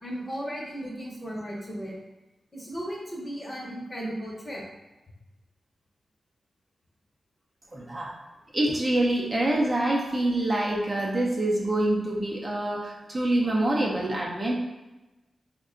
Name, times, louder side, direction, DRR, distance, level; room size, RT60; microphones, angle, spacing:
voice 1, 0.0-1.9 2.5-4.6, equal, 25° left, -3 dB, 0.9 m, -35 dB
voice 2, 7.7-8.1 8.5-14.5, right 1 dB, 30° right, -3 dB, 0.6 m, -26 dB
3.4 x 2.2 x 3.7 m, 1.1 s
wide cardioid pair, 90°, 0 cm